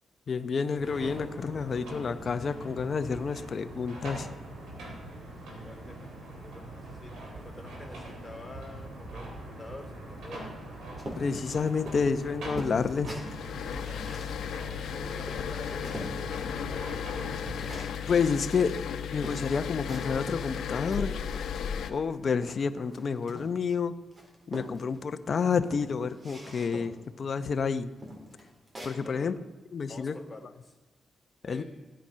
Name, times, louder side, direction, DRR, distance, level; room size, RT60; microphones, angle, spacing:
voice 1, 0.3-4.3 11.2-13.1 18.1-18.7 19.1-21.1 21.9-24.0 24.5-27.9 28.8-29.3 29.7-30.2 31.5-31.6, left 5 dB, 50° left, 11 dB, 0.8 m, -29 dB
sound 1, 0.8-17.8, right 1 dB, 90° right, 3.8 m, -43 dB
voice 2, 5.6-10.6 14.2-17.0 29.0-29.4 29.9-30.8 31.4-31.6, left 2 dB, 10° left, 2 dB, 3.1 m, -47 dB
sound 2, 11.0-16.2 16.6-18.1 18.7-18.8 19.2-20.2 20.6-21.8 22.0-23.7 24.1-25.1 25.6-27.0 27.5-27.6 28.0-29.0, equal, 30° right, 3.7 m, -43 dB
sound 3, 13.1-21.9, left 8 dB, 85° left, 1.0 m, -35 dB
16.0 x 10.5 x 5.6 m, 1.3 s
cardioid pair, 85°, 0 cm